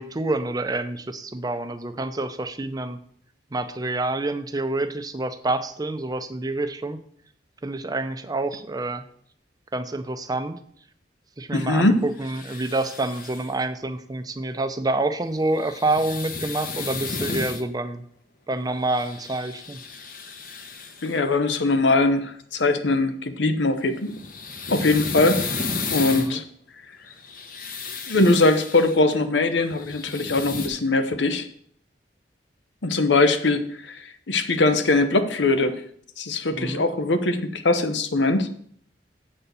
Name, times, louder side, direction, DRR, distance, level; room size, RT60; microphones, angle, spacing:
voice 1, 0.0-3.0 3.5-7.0 7.6-9.0 9.7-10.6 11.4-18.0 18.5-19.8 26.1-26.4 36.6-36.8, right 2 dB, 20° right, 10 dB, 0.5 m, -27 dB
voice 2, 11.5-12.0 21.0-24.1 24.7-25.4 25.9-26.4 28.1-31.4 32.8-35.8 36.2-38.5, left 2 dB, 90° left, 9 dB, 0.9 m, -21 dB
sound 1, 12.2-13.5 15.5-17.6 18.8-21.2 23.9-26.3 27.1-29.0 29.6-30.7, left 4 dB, 50° left, 1.0 m, -33 dB
7.7 x 4.2 x 6.8 m, 0.63 s
head